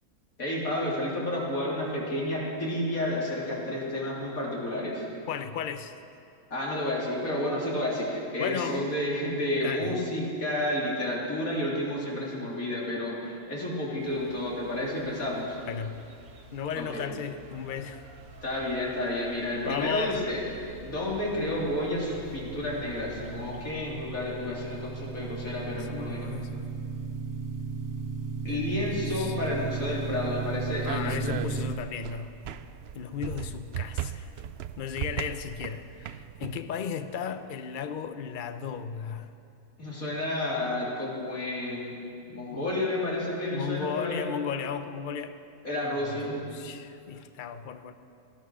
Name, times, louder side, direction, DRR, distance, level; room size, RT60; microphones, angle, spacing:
voice 1, 0.4-5.1 6.5-15.6 16.8-17.1 18.4-20.4 20.8-26.4 28.5-31.4 39.8-41.9 42.3-44.2 45.6-46.4, left 1 dB, 75° left, -5 dB, 3.6 m, -31 dB
voice 2, 5.3-5.9 8.4-9.0 9.6-10.0 15.6-16.0 16.5-18.1 19.6-20.2 25.6-26.7 28.5-29.3 30.9-32.4 32.9-34.3 34.8-39.3 42.5-42.8 43.5-45.4 45.8-47.9, left 7 dB, 45° left, 10 dB, 0.7 m, -35 dB
sound 1, 14.0-23.7, right 3 dB, 85° right, 1.6 m, -49 dB
sound 2, 20.9-31.8, right 5 dB, 15° right, 1.0 m, -36 dB
sound 3, 29.4-36.6, right 10 dB, 65° right, 0.6 m, -38 dB
18.0 x 12.0 x 6.2 m, 2.6 s
omnidirectional pair, 1.5 m